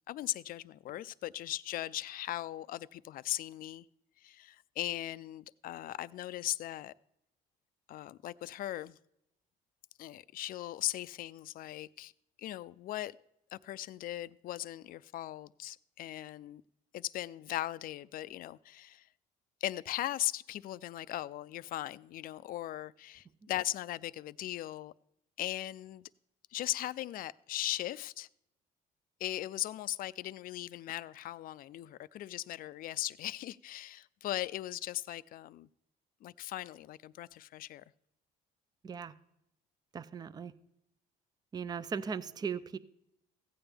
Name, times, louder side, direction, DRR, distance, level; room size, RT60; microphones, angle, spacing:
voice 1, 0.1-3.9 4.2-6.9 7.9-9.0 10.0-12.1 12.4-13.2 13.5-16.6 16.9-19.1 19.6-24.9 25.4-26.1 26.5-28.3 29.2-35.7 36.2-37.8, left 14 dB, 55° left, 0.4 m, -38 dB
voice 2, 39.9-40.5 41.5-42.8, right 6 dB, 25° right, 0.4 m, -38 dB
15.5 x 8.9 x 3.4 m
cardioid pair, 110°, 17 cm